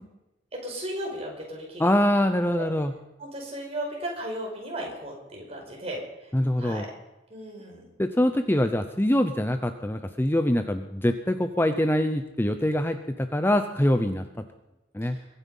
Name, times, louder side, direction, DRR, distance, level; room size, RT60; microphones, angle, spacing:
voice 1, 0.5-1.9 2.5-2.7 3.2-6.3 6.6-6.9 7.3-7.9 15.0-15.2, right 1 dB, 35° right, 0 dB, 5.1 m, -35 dB
voice 2, 1.8-2.9 6.3-6.9 8.0-14.2 14.9-15.2, left 1 dB, 10° left, 8 dB, 0.7 m, -24 dB
22.5 x 9.9 x 5.5 m, 0.97 s
head